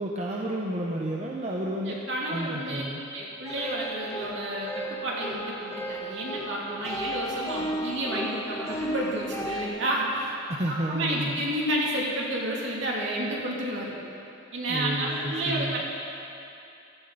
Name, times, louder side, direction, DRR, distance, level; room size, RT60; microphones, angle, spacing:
voice 1, 0.0-2.0 2.3-3.0 10.5-11.4 14.7-15.8, right 1 dB, 35° right, -2 dB, 0.9 m, -31 dB
voice 2, 1.8-2.8 3.1-10.3 10.7-13.9 14.5-15.9, right 1 dB, 60° right, -4 dB, 2.8 m, -30 dB
sound 1, 3.5-9.7, right 1 dB, 15° left, 1.2 m, -34 dB
16.0 x 14.5 x 4.1 m, 2.7 s
head